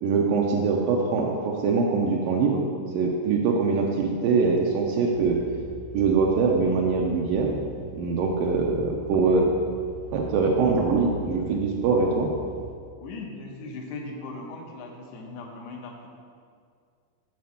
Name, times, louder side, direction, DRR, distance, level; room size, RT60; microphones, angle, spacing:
voice 1, 0.0-2.6 2.9-5.4 5.9-7.6 7.9-9.5 10.1-12.3, right 4 dB, 85° right, -1 dB, 1.9 m, -23 dB
sound 1, 5.1-12.7, right 1 dB, 65° right, 3.5 m, -42 dB
voice 2, 13.0-16.1, left 3 dB, 80° left, 0 dB, 3.0 m, -38 dB
8.1 x 4.2 x 7.0 m, 2.2 s
omnidirectional pair, 4.7 m